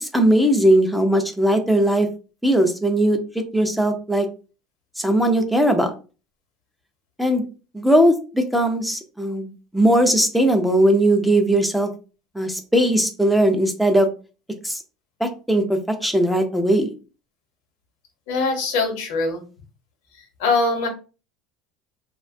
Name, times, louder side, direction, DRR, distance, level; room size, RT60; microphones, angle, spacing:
voice 1, 0.0-2.1 2.4-4.3 5.0-5.9 7.2-7.4 7.7-11.9 12.3-14.1 14.6-14.8 15.2-16.9, right 1 dB, ahead, 4 dB, 0.3 m, -19 dB
voice 2, 18.3-19.4 20.4-20.9, left 3 dB, 85° left, 4 dB, 0.9 m, -22 dB
2.6 x 2.1 x 2.5 m, 0.34 s
cardioid pair, 160°, 0 cm